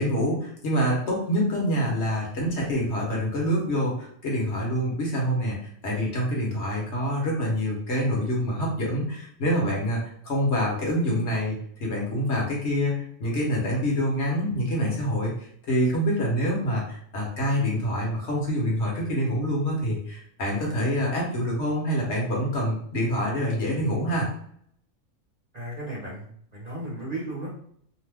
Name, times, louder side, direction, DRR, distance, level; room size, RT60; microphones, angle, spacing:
voice 1, 0.0-10.0 10.2-24.3, equal, 60° left, -3 dB, 1.2 m, -26 dB
voice 2, 25.5-27.5, right 1 dB, 35° right, -6 dB, 0.7 m, -35 dB
2.8 x 2.1 x 3.3 m, 0.64 s
omnidirectional pair, 1.4 m